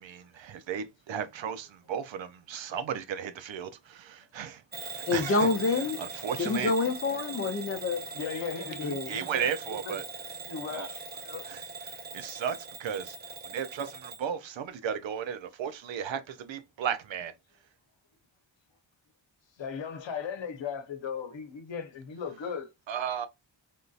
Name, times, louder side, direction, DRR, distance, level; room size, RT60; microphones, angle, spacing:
voice 1, 0.0-5.5 6.0-6.7 9.1-10.0 10.7-10.9 11.4-13.2 13.4-17.3 22.9-23.3, right 8 dB, 80° right, 0.6 m, -35 dB
Bell / Alarm, 4.7-14.3, right 4 dB, 25° right, 0.4 m, -41 dB
voice 2, 5.1-6.0 6.4-8.0 8.8-9.1, left 3 dB, 30° left, 0.6 m, -27 dB
voice 3, 8.1-10.0 10.5-11.5 19.6-22.7, left 6 dB, 70° left, 0.9 m, -37 dB
3.6 x 2.7 x 2.4 m
wide cardioid pair, 140°, 45 cm